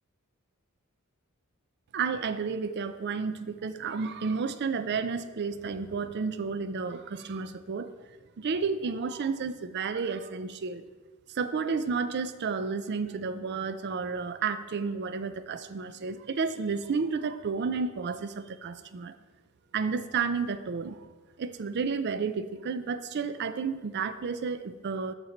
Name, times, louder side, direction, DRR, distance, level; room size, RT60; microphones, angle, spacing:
voice 1, 1.9-7.9 8.4-10.8 11.3-19.1 19.7-21.1 21.4-25.1, right 5 dB, 50° right, 12 dB, 0.4 m, -31 dB
7.2 x 6.7 x 4.4 m, 1.3 s
head